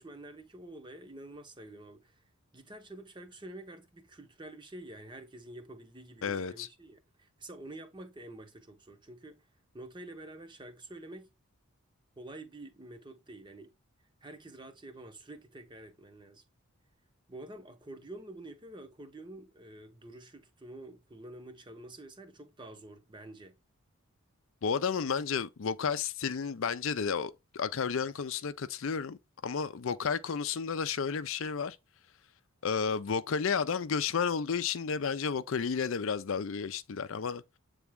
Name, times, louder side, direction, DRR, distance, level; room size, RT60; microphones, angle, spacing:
voice 1, 0.0-2.2 2.5-9.5 9.7-11.3 12.2-13.7 14.2-16.4 17.3-23.6, right 1 dB, 20° right, 0.8 m, -48 dB
voice 2, 6.2-6.7 24.6-31.8 32.6-37.4, left 6 dB, 65° left, 0.5 m, -32 dB
8.2 x 3.5 x 3.5 m
head